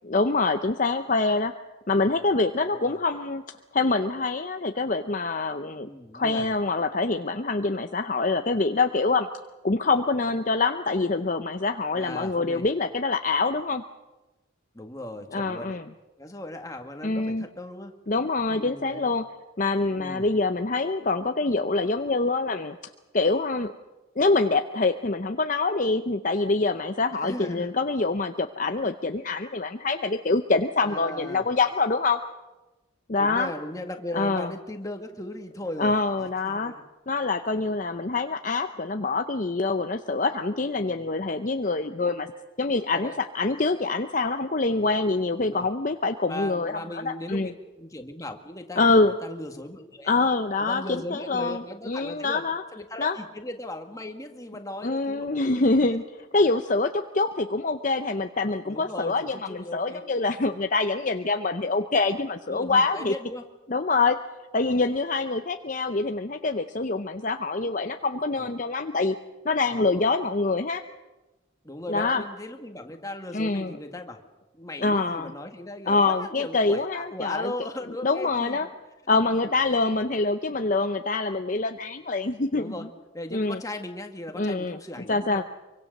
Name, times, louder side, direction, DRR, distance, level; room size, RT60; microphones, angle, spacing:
voice 1, 0.0-1.5 1.9-3.4 3.7-5.9 6.1-9.3 9.6-13.8 15.3-15.9 17.0-17.5 18.1-19.3 19.6-22.8 23.1-23.7 24.2-32.2 33.1-33.5 34.1-34.5 35.8-36.7 37.1-42.3 42.6-47.5 48.8-49.1 50.1-52.6 53.0-53.2 54.8-56.0 56.3-63.1 63.7-64.2 64.5-69.2 69.4-70.8 71.9-72.2 73.3-73.7 74.8-75.3 75.9-77.5 78.0-78.7 79.1-82.9 83.3-83.6 84.3-85.4, left 3 dB, 40° left, 7 dB, 0.7 m, -25 dB
voice 2, 2.1-3.0 5.8-6.6 11.9-12.7 14.7-15.8 16.2-17.9 18.5-19.1 20.0-20.3 27.2-27.8 30.8-31.5 33.2-35.9 36.5-36.8 39.1-39.2 40.8-41.1 42.9-43.2 44.7-44.9 45.4-45.7 46.3-47.5 47.8-50.1 50.6-52.4 52.7-56.0 58.7-60.1 62.5-63.4 64.6-64.7 67.3-67.4 68.3-68.5 69.7-70.1 71.6-74.2 74.6-78.7 79.4-79.5 82.6-82.9 83.1-85.4, left 1 dB, 15° left, 4 dB, 1.9 m, -38 dB
25.0 x 24.0 x 6.6 m, 1.1 s
head